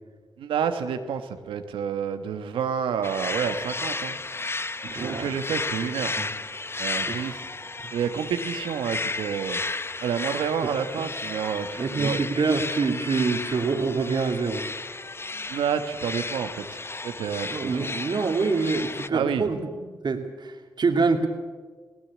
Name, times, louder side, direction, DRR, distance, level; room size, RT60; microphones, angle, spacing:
voice 1, 0.4-4.2 4.9-6.1 6.8-7.5 7.9-9.6 10.0-12.2 15.5-16.8 17.0-17.9 19.1-19.4, right 7 dB, 90° right, 8 dB, 1.3 m, -29 dB
sound 1, 3.0-19.1, left 3 dB, 30° left, 0.8 m, -33 dB
voice 2, 4.9-5.3 6.2-6.3 7.1-7.3 10.6-10.7 11.8-14.6 17.5-21.3, right 4 dB, 60° right, 5 dB, 2.7 m, -26 dB
19.0 x 17.0 x 8.5 m, 1.5 s
supercardioid pair, 50°, 9 cm